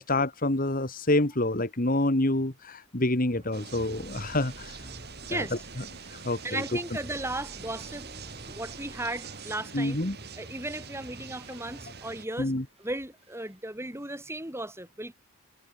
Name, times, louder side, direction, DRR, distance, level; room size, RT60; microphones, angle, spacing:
voice 1, 0.0-4.8 5.3-5.4 6.1-6.8 9.7-10.2 12.4-12.6, left 1 dB, 40° left, 1.9 m, -27 dB
sound 1, 3.3-12.5 12.8-13.6, right 1 dB, 25° right, 7.7 m, -50 dB
sound 2, 3.5-12.3, right 5 dB, 50° right, 5.2 m, -45 dB
voice 2, 5.2-5.5 6.4-8.1 8.5-10.0 10.4-12.5 12.8-15.1, right 2 dB, 10° right, 4.2 m, -35 dB
head